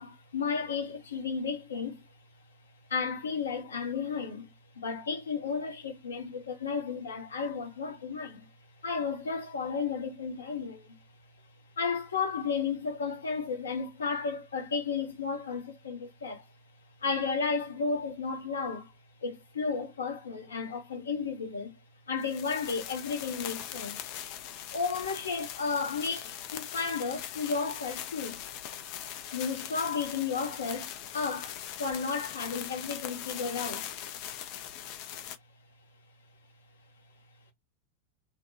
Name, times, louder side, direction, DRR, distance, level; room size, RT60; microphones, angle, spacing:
voice 1, 0.0-2.1 2.9-8.5 8.8-11.0 11.8-16.5 17.0-18.9 19.2-21.7 22.1-24.0 24.7-28.4 29.3-33.9, left 5 dB, 70° left, 0.8 m, -33 dB
sound 1, 22.2-35.4, left 11 dB, 45° left, 0.4 m, -41 dB
2.6 x 2.1 x 2.6 m
figure-of-eight pair, 90°, 0 cm